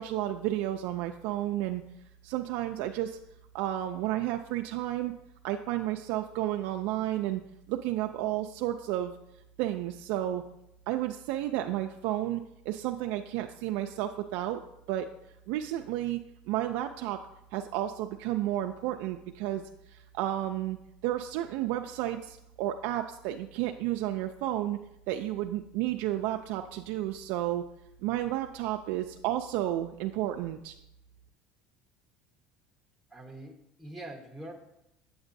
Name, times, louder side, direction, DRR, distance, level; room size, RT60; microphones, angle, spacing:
voice 1, 0.0-1.8 2.2-3.2 3.5-5.1 5.4-7.4 7.7-9.1 9.6-10.4 10.9-14.6 14.9-15.1 15.5-16.2 16.5-17.2 17.5-20.8 21.0-24.8 25.1-27.6 28.0-30.7, right 13 dB, 75° right, 5 dB, 0.3 m, -32 dB
voice 2, 33.1-34.5, right 1 dB, 5° left, 0 dB, 1.0 m, -44 dB
8.1 x 7.8 x 2.6 m, 0.82 s
supercardioid pair, 120°, 4 cm